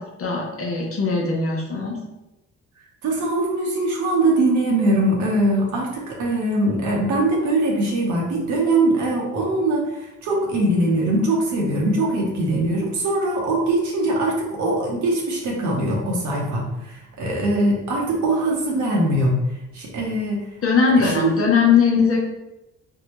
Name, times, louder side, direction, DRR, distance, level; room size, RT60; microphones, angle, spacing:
voice 1, 0.0-2.0 20.6-22.2, left 5 dB, 50° left, -1 dB, 0.7 m, -20 dB
voice 2, 3.0-19.3 19.7-20.5 21.0-21.3, right 2 dB, 75° right, -2 dB, 0.9 m, -22 dB
3.5 x 2.2 x 3.0 m, 0.96 s
cardioid pair, 90°, 30 cm